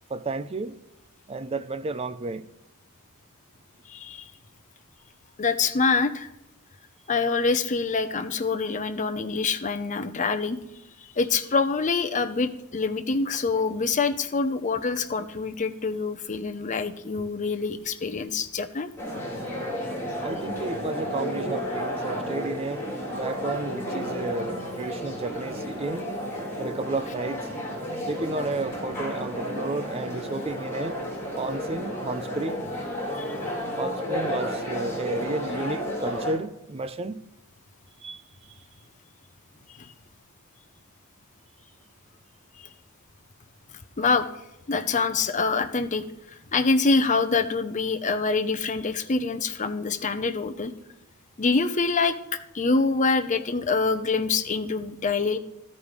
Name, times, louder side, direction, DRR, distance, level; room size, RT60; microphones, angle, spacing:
voice 1, 0.1-0.8 1.3-2.5 20.2-22.8 23.2-26.1 26.6-27.4 28.1-31.0 31.3-32.6 33.8-37.3 38.0-38.6, right 3 dB, 25° right, 0.5 m, -32 dB
voice 2, 3.9-4.2 5.4-6.3 7.1-10.6 11.2-18.9 33.2-33.3 39.8-39.9 44.0-44.3 44.7-46.0 46.5-50.7 51.4-52.1 52.5-55.4, left 4 dB, 35° left, 0.7 m, -25 dB
sound 1, 19.0-36.3, equal, 10° left, 3.4 m, -32 dB
13.0 x 5.3 x 4.8 m
head